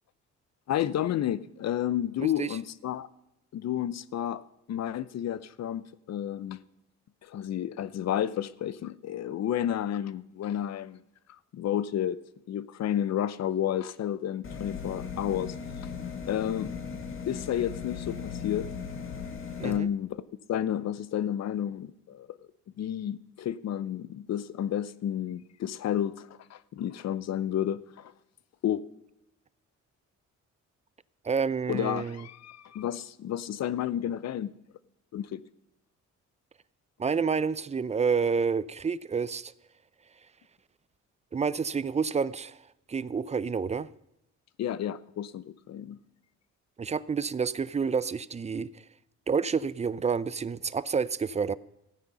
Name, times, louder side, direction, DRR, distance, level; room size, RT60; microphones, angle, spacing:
voice 1, 0.7-3.1 3.5-4.4 4.7-6.6 7.2-11.0 11.5-12.2 12.5-15.5 16.3-16.7 17.3-18.7 19.6-20.2 20.5-22.4 22.8-28.1 28.6-28.8 31.7-34.5 35.1-35.4 44.6-46.0, left 10 dB, 60° left, 0.7 m, -31 dB
voice 2, 2.2-2.6 19.6-19.9 31.2-32.2 37.0-39.5 41.3-42.6 42.9-43.9 46.8-48.7 49.3-51.5, right 5 dB, 20° right, 0.5 m, -29 dB
sound 1, 14.4-19.8, left 6 dB, 45° left, 1.8 m, -37 dB
15.0 x 9.5 x 5.6 m
cardioid pair, 90°, 30 cm